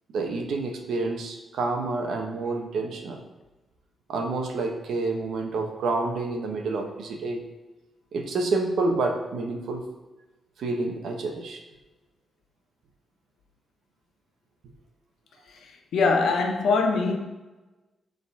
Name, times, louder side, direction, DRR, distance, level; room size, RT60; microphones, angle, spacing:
voice 1, 0.1-3.2 4.1-7.4 8.1-9.8 10.6-11.6, right 3 dB, 80° right, 1.2 m, -28 dB
voice 2, 15.5-17.2, left 4 dB, 80° left, 1.1 m, -23 dB
10.0 x 4.0 x 4.7 m
wide cardioid pair, 165°, 0 cm